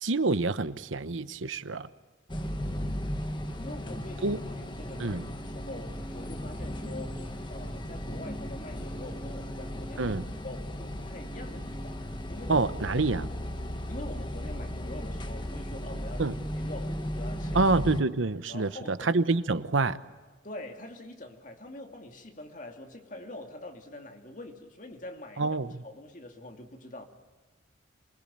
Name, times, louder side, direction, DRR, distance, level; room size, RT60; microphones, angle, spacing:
voice 1, 0.0-1.9 4.2-4.4 5.0-5.2 10.0-10.2 12.5-13.3 16.2-16.3 17.5-20.0 25.4-25.8, right 3 dB, 90° right, 1.0 m, -27 dB
sound 1, 2.3-18.0, equal, 25° left, 1.5 m, -36 dB
voice 2, 2.7-3.2 3.6-12.7 13.9-17.7 18.5-19.1 20.4-25.4 25.8-27.0, left 1 dB, 40° left, 2.6 m, -44 dB
27.5 x 20.5 x 8.8 m
head